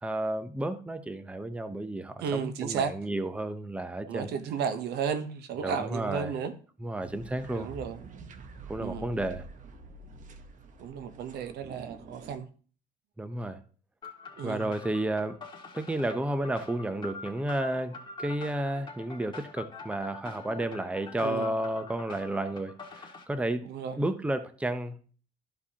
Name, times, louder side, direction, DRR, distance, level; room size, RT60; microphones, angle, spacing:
voice 1, 0.0-4.3 5.6-6.3 6.8-7.7 8.7-9.5 13.2-13.6 14.4-15.4 15.7-23.7 24.0-25.0, right 1 dB, 5° right, 0.7 m, -32 dB
voice 2, 2.2-2.9 4.1-6.5 7.5-8.0 8.8-9.1 10.8-12.5 14.4-14.7 21.2-21.5 23.6-24.0, right 7 dB, 75° right, 0.9 m, -33 dB
sound 1, 7.0-12.4, right 2 dB, 50° right, 0.9 m, -47 dB
sound 2, 14.0-23.2, left 3 dB, 30° left, 1.9 m, -45 dB
13.0 x 4.8 x 2.8 m
cardioid pair, 110°, 17 cm